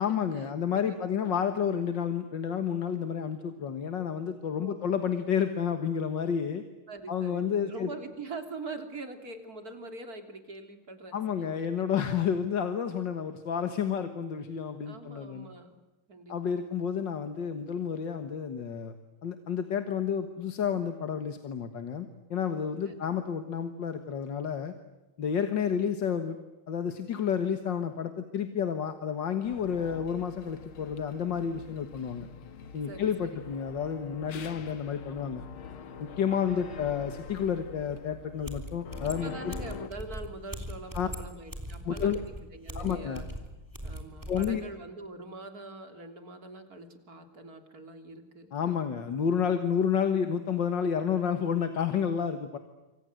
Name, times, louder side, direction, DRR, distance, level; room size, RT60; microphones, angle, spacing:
voice 1, 0.0-6.6 7.1-7.9 11.1-15.5 16.3-18.9 19.2-24.7 25.2-26.4 26.7-32.3 32.7-35.4 36.0-39.5 40.9-41.1 41.8-42.2 42.7-43.2 44.3-44.6 48.5-52.6, left 7 dB, 65° left, 9 dB, 2.2 m, -30 dB
voice 2, 0.7-1.6 4.6-5.0 6.9-11.9 14.9-15.8 16.1-16.7 22.9-23.0 25.6-25.9 32.9-33.4 36.3-36.8 39.2-43.3 43.8-48.8, right 3 dB, 45° right, 7 dB, 3.7 m, -44 dB
sound 1, 29.4-39.9, left 6 dB, 85° left, 2.3 m, -45 dB
sound 2, 38.4-44.6, equal, 10° right, 3.4 m, -40 dB
27.5 x 25.5 x 7.9 m, 1.1 s
omnidirectional pair, 2.2 m